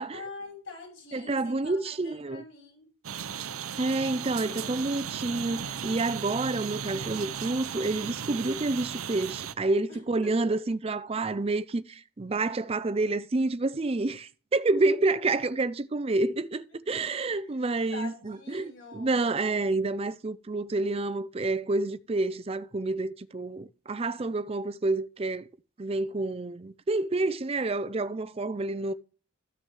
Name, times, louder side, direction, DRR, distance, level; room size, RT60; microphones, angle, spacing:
voice 1, 0.1-2.9 9.9-10.5 16.5-16.6 16.9-17.6 17.9-19.4, left 3 dB, 60° left, 5.7 m, -45 dB
voice 2, 1.1-2.4 3.8-25.5 25.8-28.9, right 2 dB, 30° right, 0.4 m, -29 dB
sound 1, 3.0-9.5, right 7 dB, 85° right, 0.6 m, -36 dB
14.0 x 6.4 x 3.1 m
head